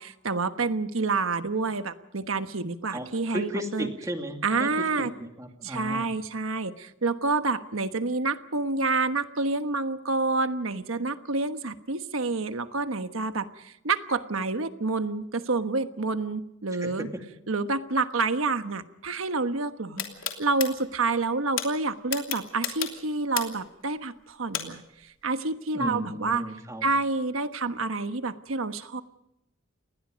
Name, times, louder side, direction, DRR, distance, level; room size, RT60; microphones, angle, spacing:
voice 1, 0.0-3.9 4.4-5.1 5.6-17.1 17.5-20.0 20.4-26.4 26.8-29.0, right 3 dB, 80° right, 9 dB, 1.2 m, -28 dB
voice 2, 2.9-4.7 5.0-6.1 16.8-17.2 20.0-20.1 25.7-26.9, equal, 15° right, 4 dB, 2.4 m, -35 dB
sound 1, 20.0-20.7 21.6-21.7 22.1-23.7 24.5-24.6, left 10 dB, 75° left, 3.0 m, -30 dB
28.0 x 20.0 x 5.2 m, 0.86 s
head